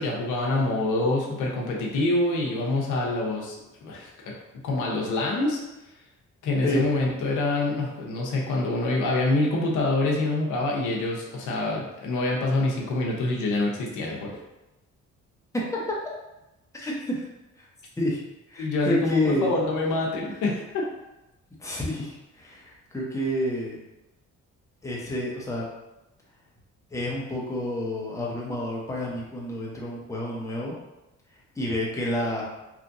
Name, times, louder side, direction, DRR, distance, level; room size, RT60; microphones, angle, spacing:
voice 1, 0.0-4.3 4.6-5.6 6.4-14.4 18.6-20.9, left 2 dB, 80° left, -2 dB, 0.7 m, -26 dB
voice 2, 15.5-16.0 16.7-17.2 17.6-17.7 18.0-18.2 18.5-19.5 21.6-23.8 24.8-25.7 26.9-30.7 31.6-32.4, left 1 dB, 10° left, -4 dB, 0.7 m, -29 dB
2.9 x 2.5 x 2.5 m, 0.96 s
cardioid pair, 90°, 30 cm